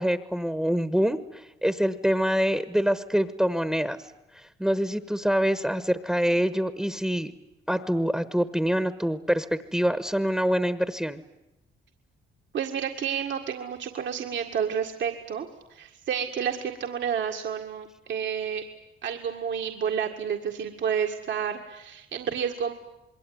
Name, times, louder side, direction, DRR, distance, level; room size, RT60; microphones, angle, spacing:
voice 1, 0.0-4.0 4.3-7.3 7.7-11.2, equal, ahead, 12 dB, 1.2 m, -25 dB
voice 2, 12.5-18.6 19.0-22.7, right 7 dB, 65° right, 3 dB, 2.0 m, -30 dB
27.0 x 21.5 x 9.6 m, 0.92 s
cardioid pair, 90°, 20 cm